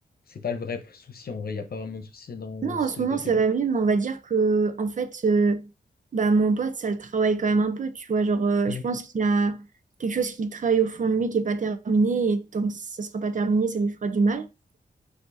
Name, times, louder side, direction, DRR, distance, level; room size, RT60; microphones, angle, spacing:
voice 1, 0.3-3.4 8.7-8.8, left 5 dB, 65° left, 0.9 m, -35 dB
voice 2, 2.6-5.7 6.1-9.6 10.0-14.5, right 4 dB, 50° right, 0.6 m, -24 dB
4.5 x 2.7 x 4.0 m
wide cardioid pair, 95°, 17 cm